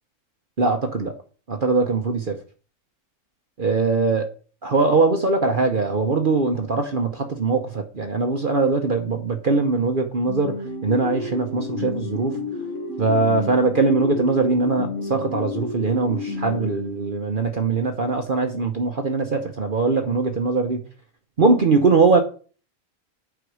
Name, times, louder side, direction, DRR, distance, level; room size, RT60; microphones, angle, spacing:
voice 1, 0.6-1.2 1.5-2.4 3.6-4.2 4.6-12.4 13.0-20.8 21.4-22.2, right 3 dB, 45° right, 1.0 m, -21 dB
sound 1, 10.3-17.4, left 3 dB, 65° left, 2.1 m, -31 dB
8.2 x 4.9 x 6.3 m
omnidirectional pair, 1.4 m